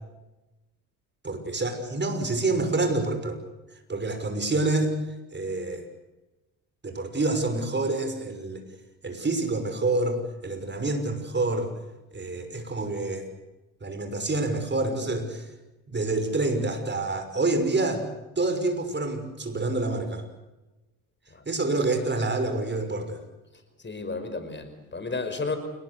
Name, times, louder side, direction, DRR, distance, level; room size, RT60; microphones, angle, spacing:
voice 1, 1.2-3.4 3.9-4.9 5.3-5.8 6.8-8.6 9.0-11.7 12.1-13.3 13.8-15.5 15.9-18.0 18.4-20.2 21.5-23.2, right 2 dB, 25° right, 7 dB, 6.1 m, -27 dB
voice 2, 23.8-25.6, left 3 dB, 25° left, 8 dB, 5.5 m, -32 dB
28.5 x 19.5 x 8.3 m, 1.0 s
hypercardioid pair, 60°, 41 cm